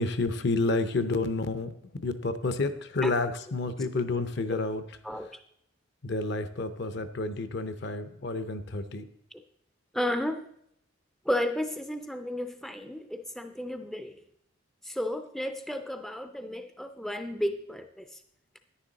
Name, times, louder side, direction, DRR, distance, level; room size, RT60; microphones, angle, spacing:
voice 1, 0.0-1.7 2.0-4.8 6.0-9.0, left 3 dB, 55° left, 11 dB, 0.7 m, -30 dB
voice 2, 9.9-10.5 11.3-14.2 14.8-18.2, left 1 dB, ahead, 8 dB, 0.4 m, -33 dB
9.9 x 9.8 x 4.0 m, 0.71 s
head